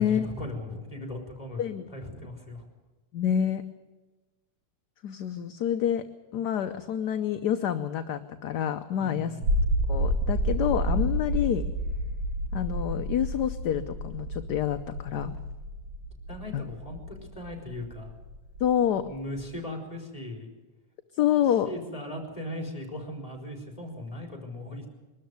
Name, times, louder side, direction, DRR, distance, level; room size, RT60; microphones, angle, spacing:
voice 1, 0.0-2.7 9.0-9.5 16.3-18.1 19.0-20.5 21.7-24.9, left 1 dB, 15° left, 2 dB, 4.1 m, -38 dB
voice 2, 3.1-3.6 5.0-6.0 6.3-9.3 9.9-11.6 12.5-15.3 16.5-16.6 18.6-19.1 21.1-21.7, left 9 dB, 60° left, 8 dB, 1.2 m, -27 dB
sound 1, 9.4-19.5, equal, 70° right, 2.3 m, -30 dB
22.5 x 13.5 x 9.5 m, 1.2 s
omnidirectional pair, 2.3 m